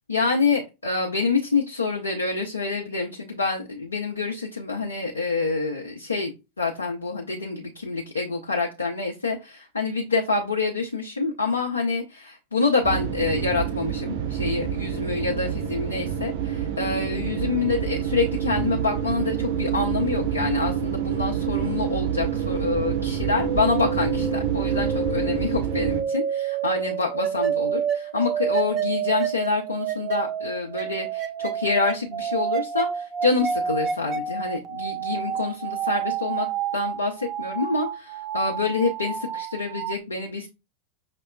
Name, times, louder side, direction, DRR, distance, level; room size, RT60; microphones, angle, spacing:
voice 1, 0.1-6.3 6.6-36.5 36.7-40.5, left 4 dB, 75° left, 0 dB, 0.5 m, -27 dB
sound 1, 12.8-26.0, right 9 dB, 45° right, 1.7 m, -27 dB
sound 2, 20.8-39.9, right 7 dB, 30° right, 0.4 m, -29 dB
5.7 x 2.1 x 2.2 m, 0.26 s
figure-of-eight pair, 90°, 0 cm